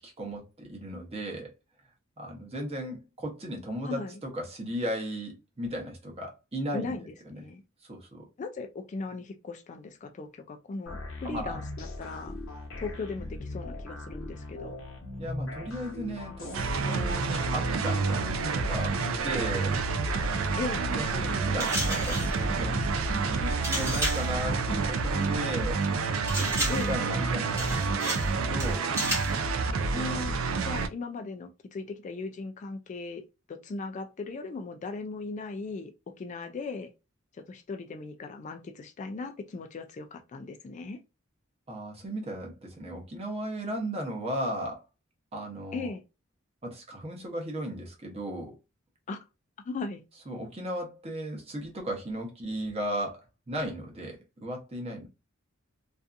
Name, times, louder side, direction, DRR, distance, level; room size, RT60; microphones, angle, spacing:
voice 1, 0.0-1.5 2.2-7.0 7.2-7.4 7.9-8.3 11.2-11.6 15.2-19.8 21.0-22.8 23.1-25.8 26.4-28.9 41.7-44.8 45.3-45.9 46.6-48.6 50.3-55.1, right 1 dB, 30° right, 0.8 m, -36 dB
voice 2, 3.8-4.2 6.7-7.0 7.3-7.6 8.4-12.4 12.8-14.8 20.6-20.8 26.7-26.9 29.9-30.3 30.6-36.9 37.3-41.0 45.7-46.0 49.1-49.2 49.7-50.0, left 3 dB, 35° left, 0.3 m, -38 dB
sound 1, 10.9-25.6, left 1 dB, 90° left, 0.8 m, -40 dB
sound 2, 16.5-30.9, right 4 dB, 85° right, 0.4 m, -28 dB
sound 3, 21.6-22.4 23.6-24.3 26.3-27.0 27.6-28.3 28.6-29.4, right 1 dB, 15° right, 1.1 m, -32 dB
2.6 x 2.3 x 2.4 m
head